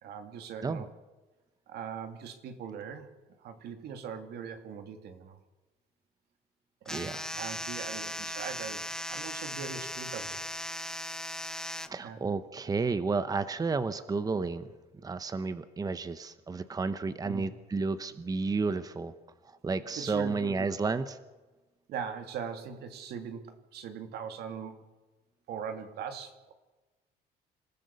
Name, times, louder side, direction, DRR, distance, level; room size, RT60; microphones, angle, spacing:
voice 1, 0.0-0.9 1.7-3.1 3.4-5.4 6.8-10.4 12.0-12.2 17.2-17.4 20.0-20.7 21.9-24.9 25.5-26.5, right 7 dB, 70° right, 7 dB, 2.5 m, -40 dB
sound 1, 6.9-11.9, left 1 dB, 5° left, 0.9 m, -38 dB
voice 2, 6.9-7.2 11.9-14.7 15.0-19.1 19.4-21.2, right 4 dB, 20° right, 12 dB, 1.0 m, -32 dB
27.0 x 15.0 x 6.9 m, 1.2 s
cardioid pair, 110°, 17 cm